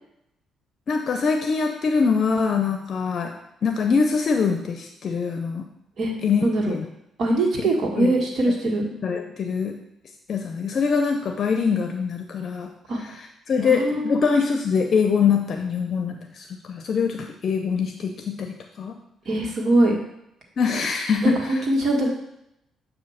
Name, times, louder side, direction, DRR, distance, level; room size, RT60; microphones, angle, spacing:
voice 1, 0.9-3.3 3.6-5.7 6.2-6.8 8.0-8.1 9.0-9.7 10.3-12.7 13.5-19.0 20.6-21.4, left 5 dB, 55° left, 4 dB, 0.6 m, -23 dB
voice 2, 6.4-6.7 7.2-8.8 12.9-13.0 13.6-14.3 19.2-19.9 21.2-22.1, right 1 dB, 55° right, -1 dB, 1.6 m, -22 dB
7.4 x 2.7 x 5.7 m, 0.82 s
cardioid pair, 90°, 0 cm